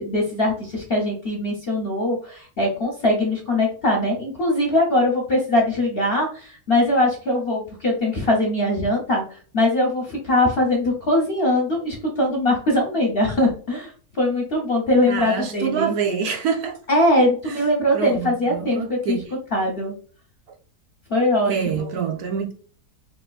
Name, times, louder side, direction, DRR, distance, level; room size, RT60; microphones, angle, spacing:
voice 1, 0.0-9.2 9.5-15.9 16.9-19.2 19.5-19.9 21.1-21.9, left 1 dB, 50° left, 0.7 m, -21 dB
voice 2, 15.1-16.8 17.5-17.6 17.9-19.2 21.5-22.5, right 6 dB, 70° right, 1.1 m, -26 dB
4.1 x 2.8 x 2.3 m
omnidirectional pair, 1.8 m